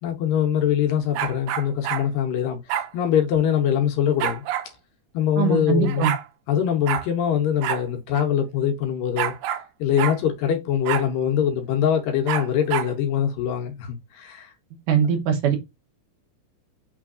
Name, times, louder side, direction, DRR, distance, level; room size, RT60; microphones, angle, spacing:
voice 1, 0.0-4.4 5.1-6.1 6.5-9.3 9.8-14.5, left 9 dB, 75° left, 2.3 m, -23 dB
sound 1, 1.1-2.1 2.7-2.9 4.2-4.7 5.6-5.7 5.8-6.2 6.9-7.1 7.6-7.8 8.1-8.2 9.2-9.7 10.0-10.2 10.9-11.1 12.3-12.9, right 10 dB, 85° right, 2.5 m, -27 dB
voice 2, 5.4-6.1 14.9-15.6, right 8 dB, 70° right, 2.3 m, -21 dB
6.1 x 3.2 x 2.4 m
omnidirectional pair, 4.3 m